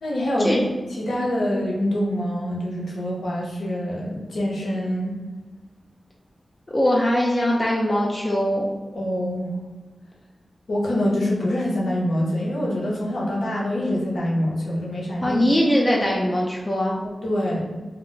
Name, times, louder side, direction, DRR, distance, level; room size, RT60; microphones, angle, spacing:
voice 1, 0.0-0.5 1.0-5.2 8.9-9.6 10.7-15.4 17.0-17.7, left 1 dB, 85° left, -4 dB, 0.6 m, -25 dB
voice 2, 6.7-8.7 15.2-17.0, equal, 30° left, -3 dB, 0.4 m, -21 dB
2.2 x 2.0 x 3.8 m, 1.3 s
cardioid pair, 60°, 0 cm